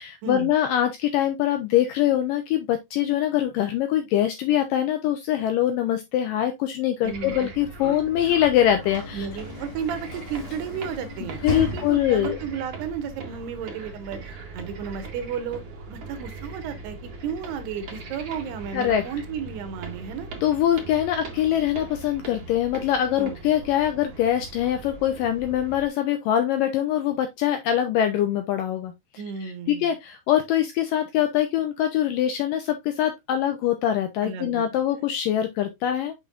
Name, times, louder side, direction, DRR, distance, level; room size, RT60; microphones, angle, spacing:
voice 1, 0.0-9.3 11.4-12.4 18.7-19.0 20.4-36.1, left 11 dB, 80° left, 2.0 m, -23 dB
sound 1, 7.0-25.9, right 4 dB, 50° right, 1.7 m, -40 dB
voice 2, 7.0-7.5 7.8-8.1 9.1-15.6 15.9-20.3 23.2-23.4 29.2-29.9 34.2-34.6, right 7 dB, 80° right, 3.1 m, -33 dB
Sliding door / Slam, 7.8-12.5, left 1 dB, 40° left, 1.9 m, -37 dB
6.9 x 5.9 x 2.5 m
omnidirectional pair, 4.7 m